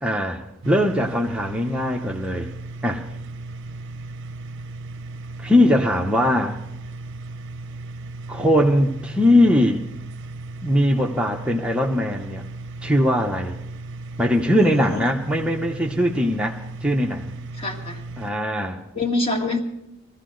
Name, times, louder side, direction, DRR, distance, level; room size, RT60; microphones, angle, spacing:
voice 1, 0.0-2.5 2.8-3.0 5.4-6.6 8.3-9.8 10.6-12.5 12.8-13.6 14.2-17.3 18.2-18.8, left 1 dB, 5° right, 0 dB, 0.7 m, -20 dB
sound 1, 0.6-18.3, right 2 dB, 60° right, 0.6 m, -36 dB
voice 2, 14.6-15.0 17.6-18.0 18.9-19.6, left 2 dB, 30° left, 1 dB, 2.0 m, -25 dB
21.0 x 15.0 x 3.9 m, 0.86 s
head